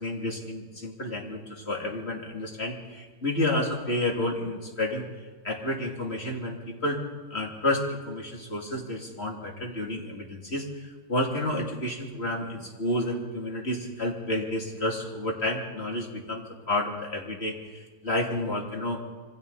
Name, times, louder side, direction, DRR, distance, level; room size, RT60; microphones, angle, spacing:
voice 1, 0.0-5.1 5.4-7.0 7.3-19.0, left 1 dB, 50° left, 0 dB, 3.0 m, -30 dB
27.0 x 23.5 x 4.1 m, 1.4 s
omnidirectional pair, 1.4 m